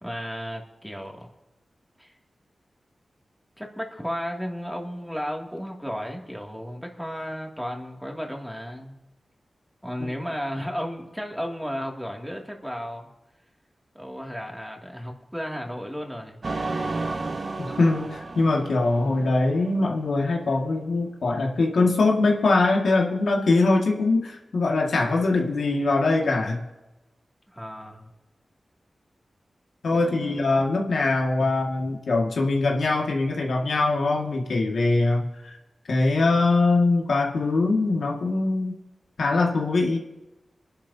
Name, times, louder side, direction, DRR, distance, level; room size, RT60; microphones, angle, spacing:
voice 1, 0.0-1.3 2.0-2.2 3.6-9.0 9.8-13.1 13.9-16.4 27.5-28.1 29.9-30.5 31.4-31.5, equal, ahead, 0 dB, 2.5 m, -34 dB
sound 1, 16.4-19.8, right 3 dB, 60° right, 1.0 m, -32 dB
voice 2, 17.6-26.6 29.8-35.6 35.9-38.8 39.2-40.0, left 3 dB, 85° left, 0 dB, 2.0 m, -22 dB
24.5 x 11.0 x 2.8 m, 1.0 s
cardioid pair, 60°, 0 cm